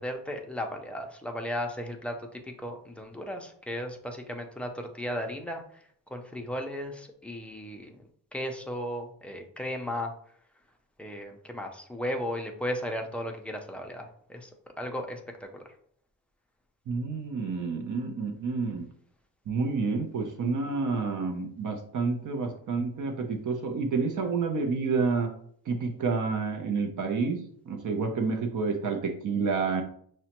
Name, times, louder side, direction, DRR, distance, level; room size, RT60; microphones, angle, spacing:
voice 1, 0.0-8.0 8.3-10.1 11.0-14.5 14.8-15.7, equal, 5° left, 2 dB, 0.4 m, -35 dB
voice 2, 16.9-18.9 19.5-25.3 25.7-29.8, right 4 dB, 55° right, 4 dB, 0.6 m, -29 dB
6.0 x 2.1 x 2.9 m, 0.62 s
wide cardioid pair, 150°, 36 cm